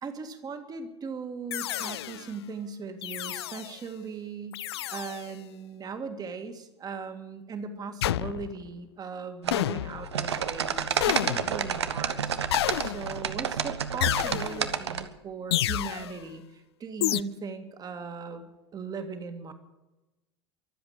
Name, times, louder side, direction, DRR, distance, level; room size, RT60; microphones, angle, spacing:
voice 1, 0.0-4.6 4.9-12.4 12.8-19.5, right 5 dB, 25° right, 7 dB, 2.0 m, -39 dB
sound 1, 1.5-2.3 3.0-3.8 4.5-5.3 8.0-8.7 9.5-10.2 11.0-11.7 12.5-13.3 14.0-14.8 15.5-16.2 17.0-17.2, left 13 dB, 65° left, 0.4 m, -30 dB
sound 2, 9.4-15.1, right 7 dB, 75° right, 1.0 m, -30 dB
23.5 x 7.9 x 7.2 m, 1.0 s
figure-of-eight pair, 85°, 14 cm